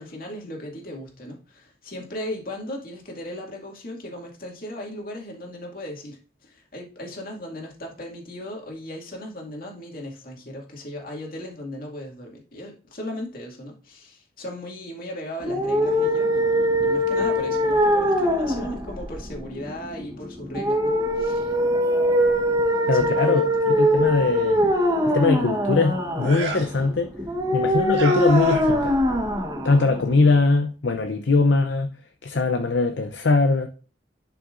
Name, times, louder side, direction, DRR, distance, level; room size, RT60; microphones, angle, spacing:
voice 1, 0.0-21.5 22.9-23.5, left 1 dB, 55° left, 2.2 m, -37 dB
sound 1, 15.4-30.4, equal, 20° right, 1.1 m, -22 dB
voice 2, 22.9-24.6 25.1-27.1 27.5-28.9 29.6-31.9 32.2-33.7, left 3 dB, 70° left, 0.6 m, -21 dB
sound 2, 26.2-26.8 27.9-28.9, right 2 dB, 75° right, 1.8 m, -32 dB
11.0 x 5.8 x 2.5 m
head